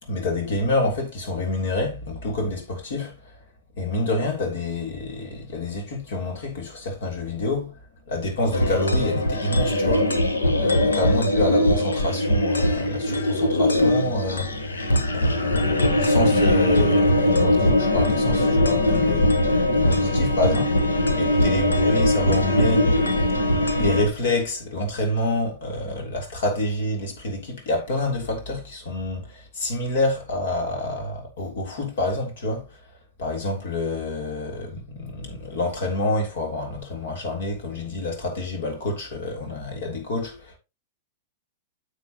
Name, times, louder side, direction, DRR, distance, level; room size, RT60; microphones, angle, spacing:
voice 1, 0.0-3.3 3.8-7.8 8.1-10.1 10.4-14.8 15.1-23.3 23.8-32.8 33.2-40.6, left 2 dB, 65° left, 3.3 m, -28 dB
sound 1, 8.5-24.1, left 1 dB, 90° left, 1.4 m, -21 dB
9.5 x 6.8 x 3.0 m
hypercardioid pair, 105°, 0 cm